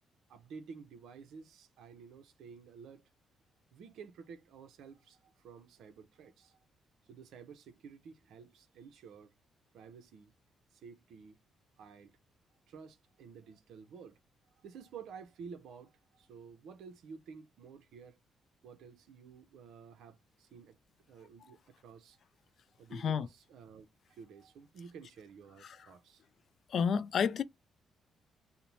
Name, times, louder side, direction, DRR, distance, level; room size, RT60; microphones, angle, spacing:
voice 1, 0.3-3.0 3.7-6.6 7.1-9.3 9.7-10.3 10.7-11.4 11.8-12.1 12.7-14.2 14.6-18.2 18.6-20.8 21.1-22.2 22.8-26.2, right 6 dB, 80° right, 0.6 m, -52 dB
voice 2, 22.9-23.3 25.6-25.8 26.7-27.4, left 7 dB, 60° left, 0.3 m, -30 dB
2.5 x 2.0 x 3.0 m
cardioid pair, 90°, 0 cm